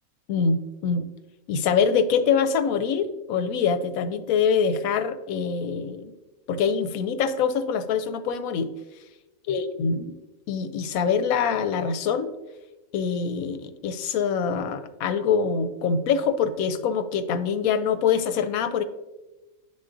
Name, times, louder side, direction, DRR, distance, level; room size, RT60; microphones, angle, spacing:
voice 1, 0.3-1.1 1.5-6.1 6.5-8.7 9.5-10.2 10.5-12.3 12.9-18.8, left 6 dB, 80° left, 10 dB, 1.0 m, -24 dB
9.9 x 3.7 x 2.5 m, 1.0 s
omnidirectional pair, 1.5 m